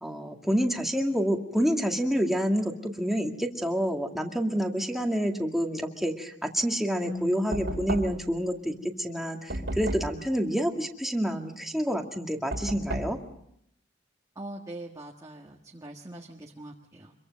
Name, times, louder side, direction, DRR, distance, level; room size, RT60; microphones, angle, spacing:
voice 1, 0.0-13.2, equal, ahead, 2 dB, 2.1 m, -28 dB
Keyboard (musical), 7.0-9.8, left 2 dB, 90° left, 6.7 m, -41 dB
Knock, 7.5-8.4 9.5-10.2 12.5-13.2, right 1 dB, 70° right, 2.8 m, -33 dB
voice 2, 14.4-17.1, right 1 dB, 20° right, -1 dB, 1.6 m, -43 dB
25.5 x 23.0 x 5.3 m, 0.76 s
head